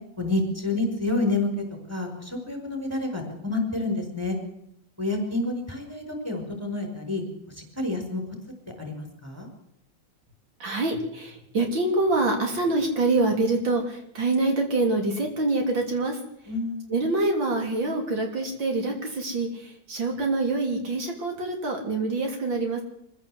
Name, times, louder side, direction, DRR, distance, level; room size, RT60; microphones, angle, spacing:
voice 1, 0.2-4.4 5.0-8.2 8.8-9.5 16.5-17.0, left 2 dB, 5° right, 3 dB, 5.1 m, -29 dB
voice 2, 10.6-16.2 16.9-22.8, right 2 dB, 85° right, 2 dB, 4.0 m, -25 dB
23.5 x 16.0 x 7.9 m, 0.78 s
omnidirectional pair, 2.0 m